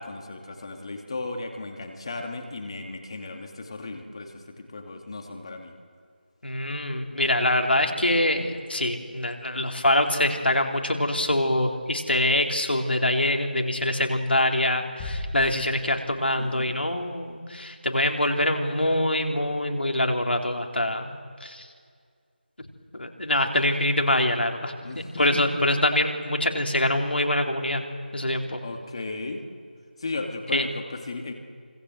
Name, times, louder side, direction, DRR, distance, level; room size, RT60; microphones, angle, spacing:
voice 1, 0.0-5.7 16.4-16.8 24.8-25.6 28.6-29.4 30.0-31.3, left 3 dB, 30° left, 4 dB, 2.6 m, -35 dB
voice 2, 6.4-21.7 23.0-24.8 25.2-27.8 28.1-28.6 30.5-30.7, left 1 dB, 75° left, 3 dB, 3.8 m, -24 dB
sound 1, 15.0-16.6, left 2 dB, 10° left, 2.4 m, -36 dB
26.0 x 26.0 x 7.8 m, 2.1 s
figure-of-eight pair, 170°, 6 cm